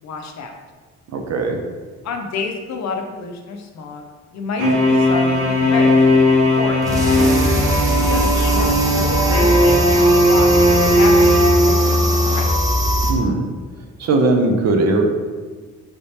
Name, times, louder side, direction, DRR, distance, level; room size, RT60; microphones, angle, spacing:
voice 1, 0.0-0.6 2.0-4.0 4.3-6.8 7.8-12.5, left 4 dB, 65° left, 4 dB, 0.6 m, -29 dB
voice 2, 1.1-1.6 13.1-13.5 14.0-15.0, right 2 dB, 60° right, 4 dB, 0.6 m, -18 dB
sound 1, 4.6-12.3, equal, 90° right, 1.3 m, -16 dB
sound 2, 6.8-13.1, equal, 10° right, 0.8 m, -20 dB
5.1 x 3.3 x 2.8 m, 1.5 s
cardioid pair, 90°, 30 cm